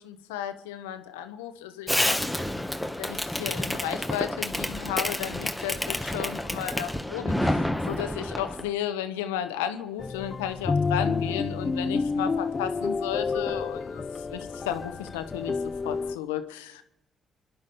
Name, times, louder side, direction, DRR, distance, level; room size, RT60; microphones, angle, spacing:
voice 1, 0.0-2.2 3.0-15.6 15.8-16.8, left 10 dB, 90° left, 9 dB, 1.1 m, -34 dB
Fireworks, 1.9-8.7, left 1 dB, 5° left, 1.5 m, -29 dB
sound 1, 10.0-16.2, left 4 dB, 40° left, 0.6 m, -29 dB
30.0 x 10.5 x 4.2 m, 0.85 s
hypercardioid pair, 45°, 0 cm